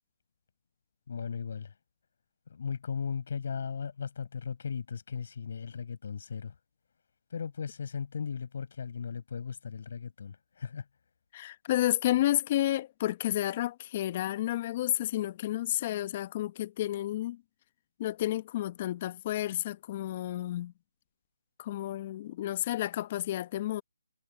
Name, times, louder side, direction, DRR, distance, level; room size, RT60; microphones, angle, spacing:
voice 1, 1.1-1.7 2.5-6.5 7.3-10.9, left 6 dB, 55° left, 6.3 m, -37 dB
voice 2, 11.3-17.4 18.0-20.7 21.6-23.8, left 14 dB, 30° left, 1.0 m, -31 dB
hypercardioid pair, 160°, 0 cm